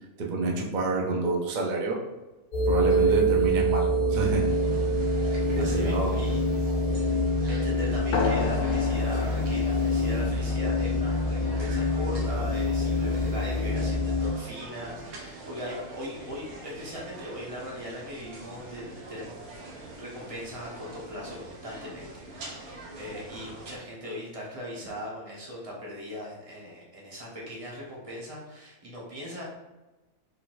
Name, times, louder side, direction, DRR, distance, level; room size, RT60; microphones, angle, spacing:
voice 1, 0.2-2.0 2.7-4.5 5.5-6.2, right 3 dB, 40° right, -1 dB, 0.7 m, -28 dB
sound 1, 2.5-14.3, equal, 85° left, 1.7 m, -26 dB
sound 2, 4.1-23.8, right 2 dB, 80° right, 1.4 m, -44 dB
voice 2, 5.1-6.4 7.5-19.4 20.0-22.0 22.3-29.4, equal, 25° right, -4 dB, 1.2 m, -39 dB
sound 3, 8.1-13.2, left 4 dB, 60° left, 0.6 m, -34 dB
4.3 x 4.1 x 2.6 m, 1.1 s
omnidirectional pair, 1.5 m